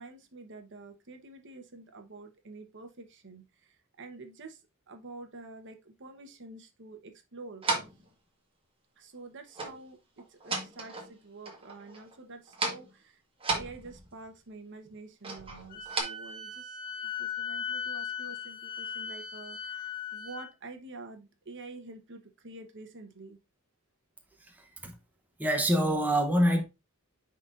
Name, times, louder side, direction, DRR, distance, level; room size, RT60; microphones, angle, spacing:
voice 1, 0.0-7.7 9.0-13.2 13.5-16.8 17.0-23.4, right 3 dB, 55° right, 1.1 m, -48 dB
sound 1, 7.6-8.1 9.5-9.8 10.2-11.2 11.5-12.2 12.5-12.9 13.4-14.3 15.2-16.0, right 3 dB, 25° right, 1.5 m, -35 dB
Wind instrument woodwind instrument, 15.7-20.5, left 6 dB, 40° left, 1.2 m, -38 dB
voice 2, 24.5-24.9 25.4-26.6, equal, 10° right, 0.9 m, -26 dB
9.5 x 3.9 x 2.5 m
head